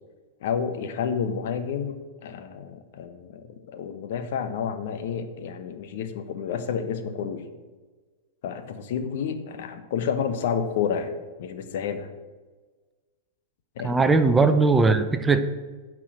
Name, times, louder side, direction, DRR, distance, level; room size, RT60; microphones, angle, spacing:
voice 1, 0.4-7.5 8.4-11.1 11.4-12.1 13.8-14.1, left 7 dB, 65° left, 10 dB, 1.0 m, -30 dB
voice 2, 13.8-15.4, right 3 dB, 15° right, 9 dB, 0.7 m, -19 dB
9.9 x 4.7 x 7.5 m, 1.3 s
hypercardioid pair, 100°, 0 cm